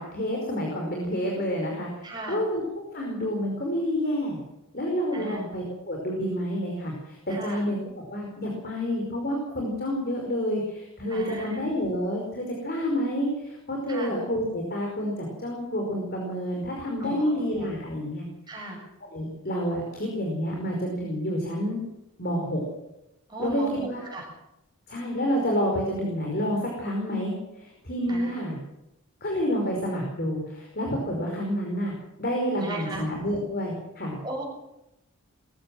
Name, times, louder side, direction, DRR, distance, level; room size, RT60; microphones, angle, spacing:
voice 1, 0.0-4.4 4.7-18.7 19.1-21.8 22.2-22.6 23.4-24.1 24.9-28.6 29.2-31.9 32.2-34.2, equal, 45° left, 0 dB, 5.1 m, -29 dB
voice 2, 2.0-2.4 5.1-5.5 7.3-7.6 11.1-11.6 13.9-14.1 17.0-17.4 18.5-18.8 23.3-24.2 28.1-28.4 32.5-33.1 34.2-34.5, right 1 dB, 20° right, 0 dB, 6.7 m, -37 dB
21.5 x 15.5 x 7.7 m, 0.90 s
head